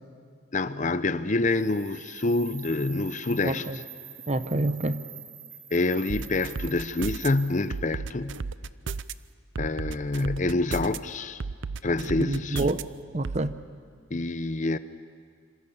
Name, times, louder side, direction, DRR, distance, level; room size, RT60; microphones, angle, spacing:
voice 1, 0.5-3.7 5.7-8.4 9.6-11.4 11.8-12.6 14.1-14.8, left 2 dB, 35° left, 0.7 m, -27 dB
sound 1, 1.5-7.8, right 7 dB, 15° right, 4.5 m, -45 dB
voice 2, 3.4-3.8 4.3-5.0 12.2-12.8 13.1-13.5, right 2 dB, 35° right, 0.8 m, -27 dB
sound 2, 6.1-7.3 7.7-9.1 9.6-11.0 11.4-12.8 13.2-13.4, right 4 dB, 65° right, 0.6 m, -33 dB
27.0 x 26.5 x 7.2 m
head